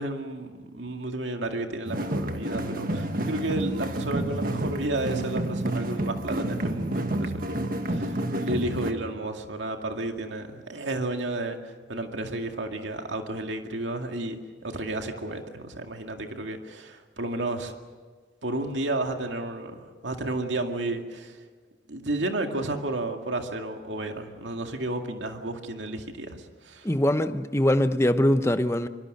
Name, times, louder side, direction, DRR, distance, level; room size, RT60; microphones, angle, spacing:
voice 1, 0.0-11.6 11.9-17.8 18.4-21.4 21.9-26.9, right 2 dB, 85° right, 2.2 m, -32 dB
sound 1, 1.9-8.9, right 1 dB, 50° right, 1.6 m, -29 dB
voice 2, 26.8-28.9, left 1 dB, 15° left, 0.9 m, -22 dB
25.0 x 23.5 x 6.6 m
head